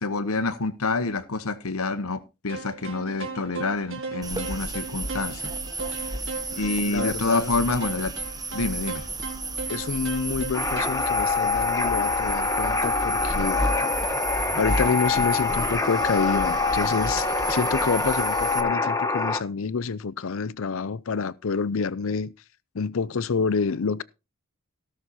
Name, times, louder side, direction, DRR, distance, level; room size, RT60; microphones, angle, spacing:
voice 1, 0.0-5.5 6.0-6.1 6.5-8.1 8.5-9.1, left 3 dB, 80° left, 1.1 m, -27 dB
sound 1, 2.5-10.8, right 3 dB, 65° right, 4.0 m, -37 dB
sound 2, 4.2-18.6, right 2 dB, 20° right, 1.3 m, -33 dB
voice 2, 6.8-7.5 9.7-13.6 14.6-22.3 22.7-24.0, left 5 dB, 65° left, 0.6 m, -28 dB
sound 3, 10.5-19.4, left 4 dB, 15° left, 1.4 m, -25 dB
17.5 x 6.5 x 4.2 m
head